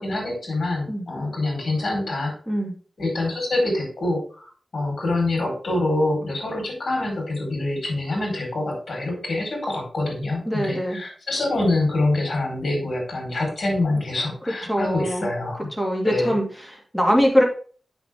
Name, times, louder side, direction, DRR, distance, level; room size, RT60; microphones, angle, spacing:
voice 1, 0.0-2.3 3.0-15.7 16.0-16.3, left 2 dB, 65° left, 0 dB, 4.3 m, -25 dB
voice 2, 10.5-11.0 14.7-15.3 15.8-17.4, equal, 5° left, 0 dB, 2.5 m, -22 dB
8.1 x 6.3 x 3.6 m, 0.41 s
wide cardioid pair, 80°, 0 cm